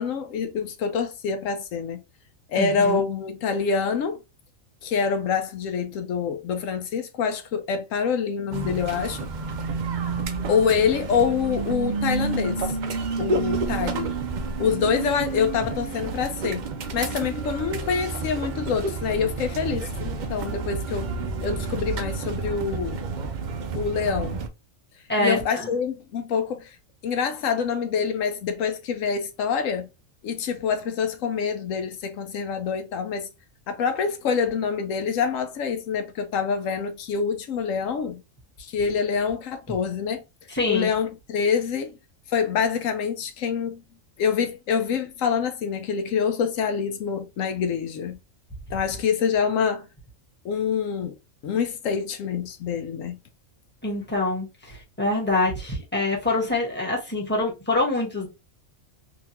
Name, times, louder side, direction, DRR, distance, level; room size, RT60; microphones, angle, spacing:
voice 1, 0.0-2.0 2.5-4.2 4.8-9.2 10.5-12.7 13.2-14.2 14.6-16.7 16.9-21.1 21.4-23.0 23.8-24.4 25.2-26.8 27.0-29.9 30.2-33.3 33.7-38.2 38.6-40.2 40.7-41.9 42.3-43.8 44.2-48.2 48.7-49.9 50.4-51.2 51.4-53.2, left 6 dB, 80° left, 1.0 m, -26 dB
voice 2, 2.6-3.0 25.1-25.7 40.5-40.9 53.8-58.3, left 2 dB, 10° left, 1.2 m, -25 dB
sound 1, 8.5-24.5, right 4 dB, 75° right, 0.4 m, -30 dB
3.8 x 2.6 x 2.8 m
omnidirectional pair, 1.4 m